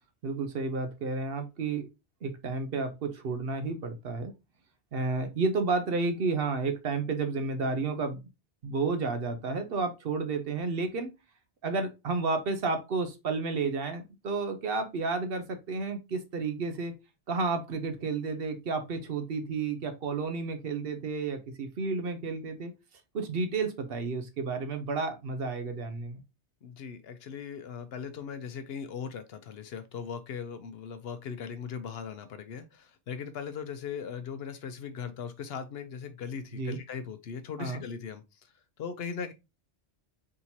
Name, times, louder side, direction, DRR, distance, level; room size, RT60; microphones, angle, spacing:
voice 1, 0.2-1.9 2.2-4.3 4.9-8.2 8.6-11.1 11.6-16.9 17.3-22.7 23.1-26.2 36.5-36.8 37.6-37.8, right 4 dB, 60° right, 0.9 m, -31 dB
voice 2, 26.6-38.5 38.8-39.3, left 6 dB, 65° left, 0.8 m, -39 dB
4.3 x 3.6 x 2.7 m
omnidirectional pair, 1.2 m